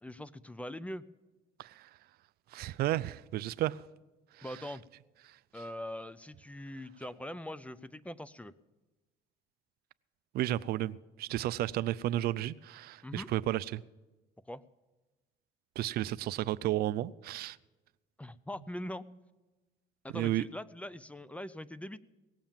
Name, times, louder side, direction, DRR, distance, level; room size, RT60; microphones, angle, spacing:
voice 1, 0.0-1.0 4.4-4.8 5.5-8.5 13.0-13.3 14.5-14.6 18.2-19.1 20.0-22.0, left 1 dB, 10° left, 0.4 m, -42 dB
voice 2, 2.5-3.8 10.3-13.8 15.8-17.6 20.1-20.4, right 14 dB, 65° right, 0.4 m, -32 dB
18.5 x 7.4 x 7.2 m
cardioid pair, 110°, 17 cm